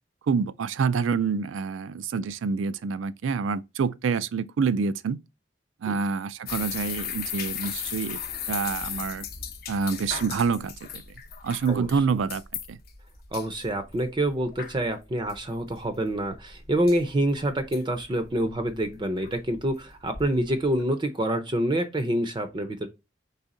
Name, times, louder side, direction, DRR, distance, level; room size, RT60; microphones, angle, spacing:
voice 1, 0.3-5.2 5.8-8.2 8.5-9.3 9.7-11.0 11.4-12.4 12.7-12.8, right 5 dB, 85° right, 0.4 m, -27 dB
sound 1, 6.5-20.8, left 8 dB, 50° left, 0.7 m, -37 dB
voice 2, 13.3-22.9, right 1 dB, 25° right, 0.5 m, -27 dB
4.1 x 3.5 x 3.7 m
head